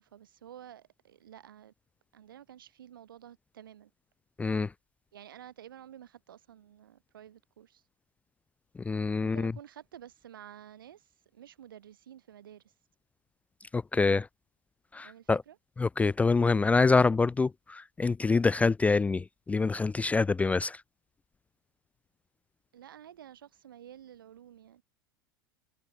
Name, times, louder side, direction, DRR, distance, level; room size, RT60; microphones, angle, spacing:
voice 1, 0.0-1.7 2.1-3.9 5.1-7.8 9.2-12.7 15.0-15.6 22.7-24.8, right 10 dB, 70° right, 5.2 m, -51 dB
voice 2, 4.4-4.7 8.9-9.5 13.7-14.3 14.9-15.4 15.8-20.8, left 4 dB, 10° left, 0.4 m, -26 dB
figure-of-eight pair, 80°, 12 cm